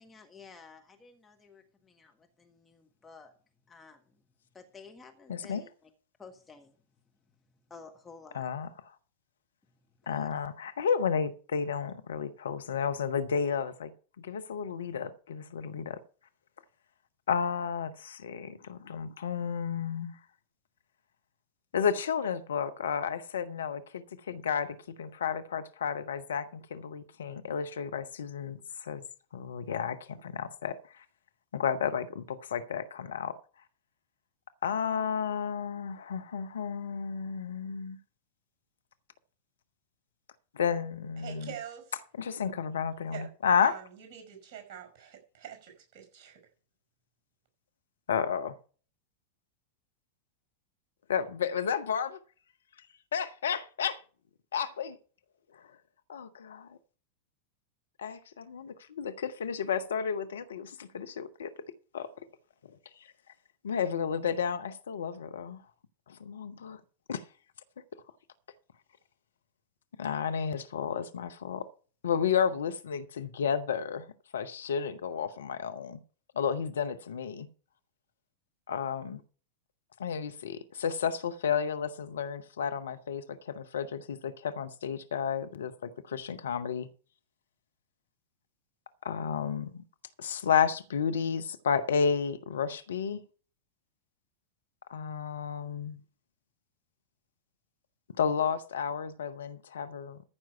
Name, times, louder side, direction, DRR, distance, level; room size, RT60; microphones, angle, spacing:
voice 1, 0.0-3.3 3.7-4.2 4.5-5.9 6.2-6.8 7.7-8.5 10.0-10.3, left 4 dB, 15° left, 1.5 m, -52 dB
voice 2, 5.3-5.6 8.3-8.7 10.1-13.9 14.2-16.0 17.3-20.2 21.7-29.0 29.3-31.0 31.5-33.4 34.6-38.0 40.5-41.5 42.2-43.7 48.1-48.5 51.1-52.2 53.1-54.0 54.5-55.0 55.5-55.7 56.1-56.8 58.0-61.5 61.9-62.1 63.0-63.1 63.6-65.6 66.1-66.8 67.1-67.2 70.0-71.7 72.0-74.1 74.3-76.0 76.4-77.5 78.7-79.2 80.0-86.9 89.0-89.8 90.2-93.2 94.9-96.0 98.2-100.2, left 7 dB, 65° left, 0.9 m, -32 dB
voice 3, 41.2-41.9 43.1-43.3 43.6-46.4, right 9 dB, 40° right, 5.5 m, -44 dB
14.0 x 6.1 x 5.7 m
figure-of-eight pair, 90°, 0 cm